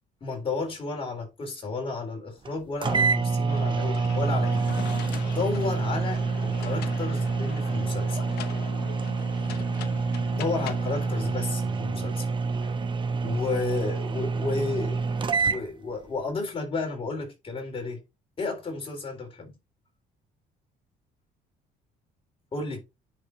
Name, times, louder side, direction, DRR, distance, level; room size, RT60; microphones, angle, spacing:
voice 1, 0.2-4.7 5.3-8.2 10.3-12.3 12.6-12.7 13.2-18.0 18.4-19.5 22.5-22.8, left 3 dB, 35° left, 3.9 m, -32 dB
sound 1, 2.5-2.6 2.8-15.6, right 4 dB, 30° right, 0.9 m, -27 dB
sound 2, 3.5-11.5, left 11 dB, 75° left, 0.9 m, -41 dB
10.0 x 5.0 x 2.8 m
cardioid pair, 110°, 17 cm